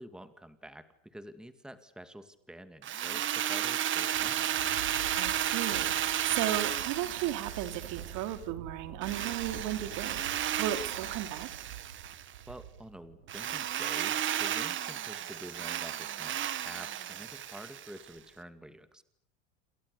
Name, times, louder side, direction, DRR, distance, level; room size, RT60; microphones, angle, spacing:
voice 1, 0.0-4.5 12.5-19.0, right 1 dB, ahead, 10 dB, 2.3 m, -48 dB
Drill, 2.8-8.4 9.0-12.3 13.3-18.1, right 11 dB, 30° right, 1.8 m, -33 dB
Thunder, 3.9-14.3, right 9 dB, 85° right, 5.0 m, -47 dB
voice 2, 5.1-6.0 6.2-10.2 10.6-11.5, right 12 dB, 55° right, 9 dB, 3.3 m, -35 dB
28.5 x 28.0 x 6.9 m, 0.70 s
supercardioid pair, 120°, 37 cm